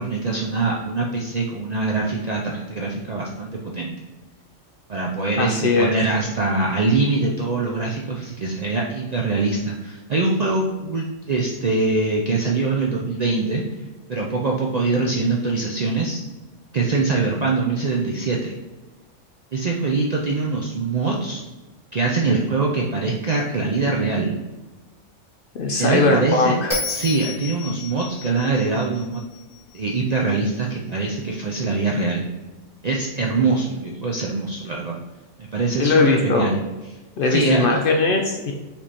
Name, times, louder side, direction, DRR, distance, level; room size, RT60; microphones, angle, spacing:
voice 1, 0.0-3.9 4.9-13.6 14.1-16.2 16.7-18.5 19.5-21.4 21.9-24.4 25.8-26.6 26.9-29.2 29.7-32.2 32.8-35.0 35.4-36.6 37.3-37.8, right 3 dB, 60° right, -1 dB, 0.4 m, -23 dB
voice 2, 5.4-5.9 25.5-26.8 35.8-36.5 37.2-38.5, left 3 dB, 60° left, 2 dB, 0.6 m, -20 dB
Bell, 26.7-30.0, left 3 dB, 30° left, 1.1 m, -32 dB
5.0 x 3.4 x 2.9 m, 1.2 s
omnidirectional pair, 1.3 m